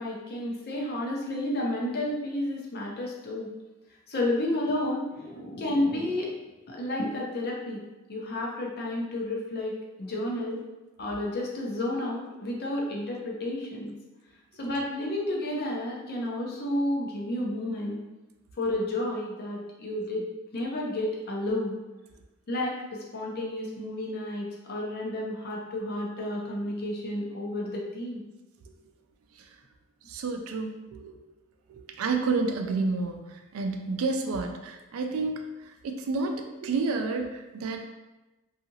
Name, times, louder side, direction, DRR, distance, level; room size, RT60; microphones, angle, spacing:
voice 1, 0.0-3.5 4.1-6.3 6.7-7.8 8.1-9.7 10.0-10.6 11.0-13.9 14.6-18.0 18.6-20.3 20.5-21.8 22.5-28.2, left 1 dB, 50° left, -2 dB, 0.6 m, -31 dB
voice 2, 30.1-31.2 31.7-37.9, right 3 dB, 70° right, 5 dB, 0.3 m, -30 dB
2.7 x 2.4 x 2.7 m, 1.1 s
head